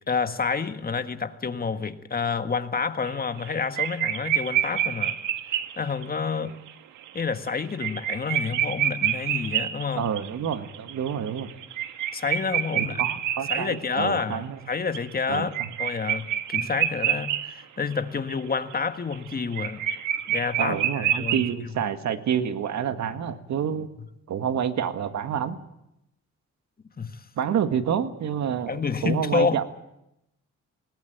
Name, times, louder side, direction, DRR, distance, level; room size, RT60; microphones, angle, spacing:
voice 1, 0.1-5.2 5.8-6.6 7.1-10.1 12.1-13.0 13.5-19.8 20.3-21.4 27.0-27.2 28.7-29.6, left 5 dB, 30° left, 8 dB, 1.7 m, -29 dB
sound 1, 3.1-3.5 3.8-6.0 6.7-6.8 7.0-7.1 7.5-14.3 14.7-17.6 17.9-18.0 18.3-21.5, right 10 dB, 85° right, 1.5 m, -28 dB
voice 2, 10.0-11.5 12.7-14.6 15.3-15.7 16.6-16.7 20.6-23.9 24.3-25.6 27.4-29.6, right 8 dB, 65° right, 9 dB, 1.9 m, -28 dB
20.0 x 18.5 x 9.1 m, 0.86 s
cardioid pair, 90°, 30 cm